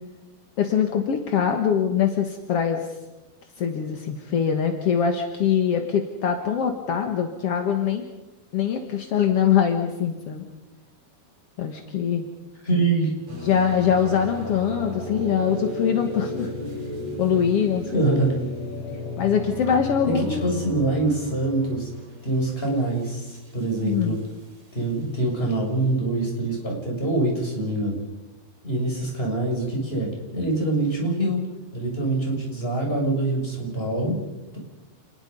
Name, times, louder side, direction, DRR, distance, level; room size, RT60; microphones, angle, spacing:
voice 1, 0.6-2.9 3.6-8.0 8.5-10.4 11.6-12.3 13.4-16.5 17.2-18.1 19.2-20.5 23.8-24.2, left 8 dB, 55° left, 5 dB, 1.8 m, -23 dB
voice 2, 12.6-13.1 17.9-18.3 20.0-21.9 22.2-24.2 24.7-28.0 28.6-31.4 31.7-34.2, right 2 dB, 15° left, -1 dB, 6.9 m, -24 dB
sound 1, 13.3-24.2, left 1 dB, 45° right, 6.5 m, -34 dB
29.0 x 21.0 x 5.4 m, 1.0 s
omnidirectional pair, 4.7 m